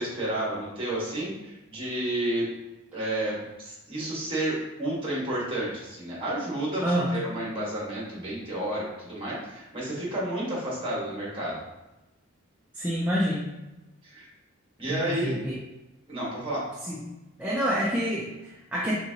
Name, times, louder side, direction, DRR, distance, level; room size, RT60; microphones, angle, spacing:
voice 1, 0.0-2.5 2.9-11.6 14.0-14.3 14.8-15.5 16.1-16.7, right 1 dB, 25° right, -5 dB, 1.4 m, -31 dB
voice 2, 6.8-7.1 12.7-13.5 14.9-15.6 16.8-17.0 17.4-18.9, equal, 5° right, -6 dB, 0.4 m, -27 dB
4.3 x 3.6 x 2.8 m, 1.0 s
head